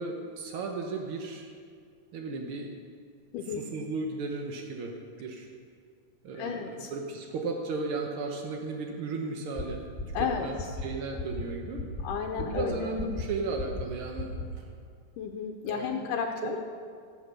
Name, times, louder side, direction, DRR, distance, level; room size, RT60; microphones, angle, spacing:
voice 1, 0.0-1.5 2.1-2.7 3.5-5.5 6.2-9.8 10.2-10.6 10.8-11.8 12.4-14.7 15.6-16.1 16.4-16.6, right 3 dB, 75° right, 2 dB, 1.2 m, -35 dB
voice 2, 6.3-6.9 10.1-10.5 12.0-12.9 15.2-16.6, left 7 dB, 75° left, 3 dB, 2.2 m, -33 dB
sound 1, 9.6-9.7 10.0-10.2 10.6-10.8 11.2-11.4 11.8-12.0 12.4-12.6 13.0-13.2 13.6-13.8 14.2-14.4, left 4 dB, 5° left, 1.5 m, -34 dB
16.5 x 8.1 x 6.7 m, 2.2 s
omnidirectional pair, 3.9 m